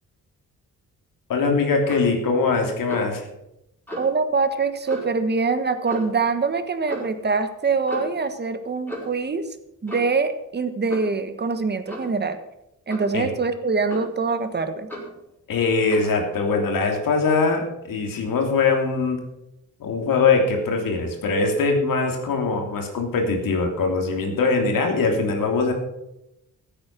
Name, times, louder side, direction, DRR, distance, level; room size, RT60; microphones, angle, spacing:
voice 1, 1.3-3.3 13.1-13.3 15.5-19.2 19.8-25.7, left 4 dB, 85° left, 2 dB, 3.2 m, -22 dB
Clock, 1.8-2.2 2.9-3.2 3.9-4.1 4.9-5.2 5.9-6.2 6.9-7.1 7.9-8.2 8.9-9.2 9.9-10.2 10.9-11.2 11.9-12.2 12.9-13.2 13.9-14.3 14.9-15.2 15.9-16.1, equal, 5° left, 5.9 m, -35 dB
voice 2, 4.0-9.4 9.8-12.4 12.9-14.9, right 4 dB, 30° right, 9 dB, 1.3 m, -24 dB
16.0 x 8.8 x 6.1 m, 0.86 s
wide cardioid pair, 125°, 33 cm